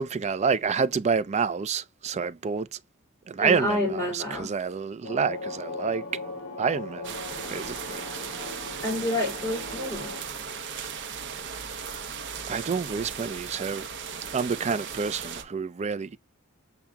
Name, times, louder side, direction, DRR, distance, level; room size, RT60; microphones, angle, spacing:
voice 1, 0.0-2.8 3.3-6.0 6.6-7.1 7.5-8.0 12.5-13.9 14.3-16.2, right 5 dB, 30° right, 0.4 m, -28 dB
voice 2, 3.4-4.5 8.8-10.2, left 1 dB, 15° left, 2.3 m, -28 dB
sound 1, 5.0-10.2, left 2 dB, 45° left, 1.8 m, -38 dB
sound 2, 7.0-15.4, right 6 dB, 55° right, 0.8 m, -37 dB
7.0 x 2.8 x 2.2 m
head